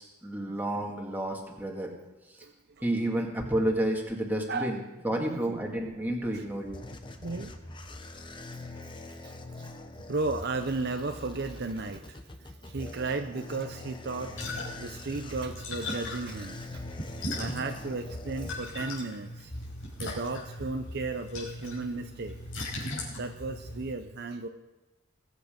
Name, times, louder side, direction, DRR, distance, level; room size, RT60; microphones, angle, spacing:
voice 1, 0.0-1.9 2.8-4.8 5.0-6.8, right 1 dB, 10° right, 0 dB, 1.9 m, -30 dB
voice 2, 2.4-2.8 4.5-4.8 5.1-5.7 6.3-6.5 7.2-7.5 8.4-8.5 8.7-8.8 9.2-9.7 10.0-19.6 20.0-22.4 23.0-24.5, right 3 dB, 50° right, 6 dB, 0.7 m, -35 dB
sound 1, 6.3-19.1, left 2 dB, 25° left, 0.9 m, -44 dB
sound 2, 14.2-23.9, left 1 dB, 70° left, 5.5 m, -39 dB
21.5 x 8.4 x 5.2 m, 1.1 s
head